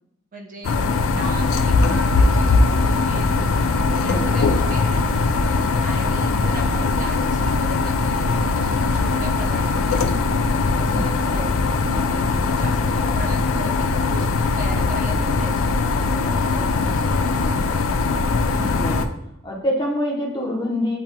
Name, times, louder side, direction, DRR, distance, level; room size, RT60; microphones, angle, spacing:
voice 1, 0.3-0.8 1.1-3.4 4.0-5.2 5.8-10.2 10.8-17.8, right 1 dB, 40° right, 2 dB, 0.5 m, -38 dB
sound 1, 0.6-19.1, left 3 dB, 85° left, 0.4 m, -20 dB
voice 2, 4.0-4.4 6.3-6.5 10.9-11.2 18.6-19.1 19.4-21.0, left 1 dB, 20° left, -1 dB, 0.9 m, -26 dB
8.3 x 2.9 x 2.2 m, 0.80 s
head